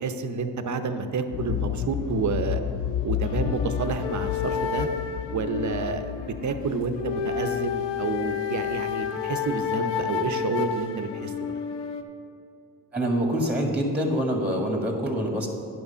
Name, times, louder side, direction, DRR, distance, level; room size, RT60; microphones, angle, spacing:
voice 1, 0.0-2.6 3.0-4.9 5.3-11.6, right 4 dB, 45° right, 8 dB, 0.8 m, -29 dB
sound 1, 1.3-9.1 9.4-9.5, left 10 dB, 50° left, 0.5 m, -32 dB
sound 2, 3.2-12.0, left 7 dB, 80° left, 0.7 m, -31 dB
voice 2, 12.9-15.5, equal, 5° right, 1 dB, 1.7 m, -25 dB
9.6 x 6.1 x 5.6 m, 2.6 s
supercardioid pair, 60°, 42 cm